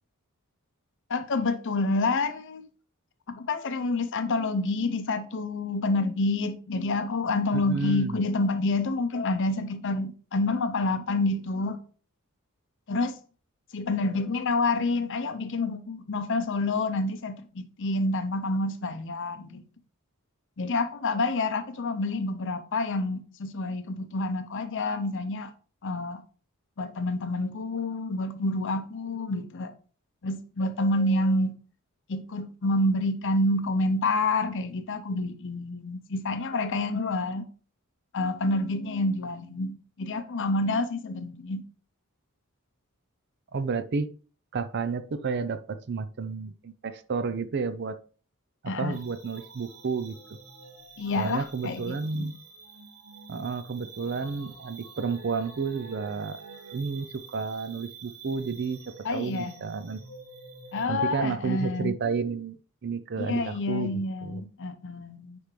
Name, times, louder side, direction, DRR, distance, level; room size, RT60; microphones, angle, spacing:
voice 1, 1.1-2.7 3.3-11.8 12.9-13.2 13.7-19.6 20.6-25.5 25.8-26.2 26.8-29.7 30.2-31.5 32.1-37.5 38.1-41.6 48.7-49.0 51.0-52.3 59.0-59.6 60.7-62.0 63.2-65.4, left 2 dB, 55° left, 0.7 m, -28 dB
voice 2, 7.5-8.1 43.5-44.1 44.5-48.0 48.8-50.4 51.2-52.3 53.3-56.4 56.7-60.0 60.9-64.4, right 5 dB, 50° right, 0.5 m, -31 dB
sound 1, 48.9-60.9, right 4 dB, 80° right, 1.7 m, -48 dB
9.6 x 3.5 x 3.2 m
head